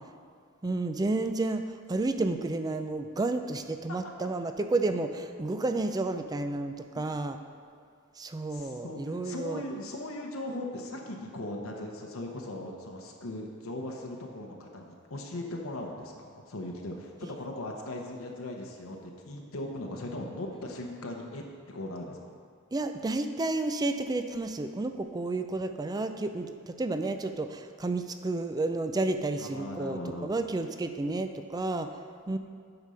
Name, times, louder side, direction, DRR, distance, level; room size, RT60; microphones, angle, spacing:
voice 1, 0.6-7.4 8.2-9.6 22.7-32.0 32.3-32.4, right 2 dB, 20° right, 8 dB, 0.4 m, -31 dB
voice 2, 3.9-4.3 6.9-7.0 8.5-22.3 29.4-30.3, left 1 dB, 75° left, 1 dB, 0.9 m, -39 dB
8.1 x 5.2 x 5.5 m, 2.1 s
head